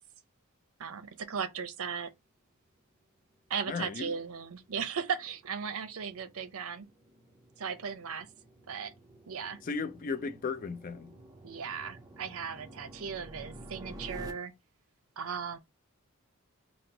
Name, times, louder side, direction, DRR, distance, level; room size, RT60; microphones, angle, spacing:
voice 1, 0.8-2.1 3.5-6.9 7.6-8.3 8.7-8.9 9.3-9.6 11.4-14.5 15.2-15.6, right 6 dB, 70° right, 0.6 m, -37 dB
sound 1, 3.2-14.3, right 1 dB, 15° right, 0.6 m, -51 dB
voice 2, 3.7-4.1 9.6-11.1, left 4 dB, 40° left, 0.4 m, -35 dB
4.3 x 2.0 x 3.9 m
head